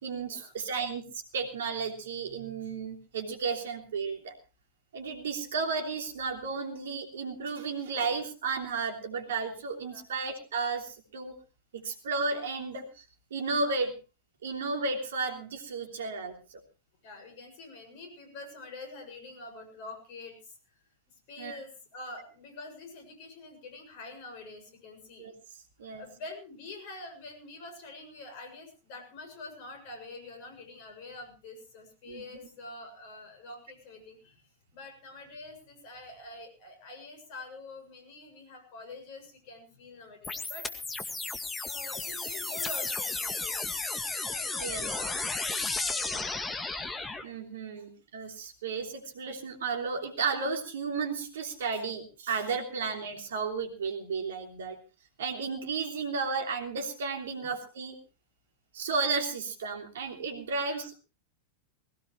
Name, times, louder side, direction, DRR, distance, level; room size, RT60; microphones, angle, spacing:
voice 1, 0.0-4.3 4.9-11.3 11.7-13.0 13.3-13.9 14.4-16.6 21.4-21.6 25.2-25.3 25.8-26.0 32.0-32.2 44.5-44.9 47.2-54.8 55.2-58.0 58.7-60.9, right 4 dB, 60° right, 4 dB, 3.2 m, -33 dB
voice 2, 17.0-20.8 21.3-25.3 25.8-41.4 41.6-43.6 44.2-45.4 45.8-46.2 57.4-57.6 60.6-60.9, left 2 dB, 45° left, 5 dB, 6.9 m, -46 dB
sound 1, 40.2-47.2, left 3 dB, 10° left, 2.0 m, -33 dB
19.5 x 17.0 x 3.2 m, 0.32 s
figure-of-eight pair, 90°, 0 cm